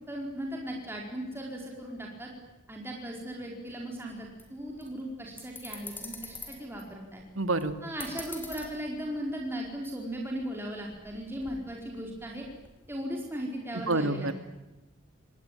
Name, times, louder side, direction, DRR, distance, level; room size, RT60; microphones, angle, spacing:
voice 1, 0.0-2.3 2.7-7.2 7.8-12.4 12.9-14.3, equal, 10° right, 0 dB, 4.6 m, -37 dB
sound 1, 4.1-9.9 10.2-10.4 10.8-12.9, left 2 dB, 10° left, 4.6 m, -46 dB
voice 2, 7.4-7.7 13.9-14.3, right 2 dB, 85° right, 10 dB, 2.5 m, -27 dB
27.5 x 20.0 x 9.2 m, 1.0 s
head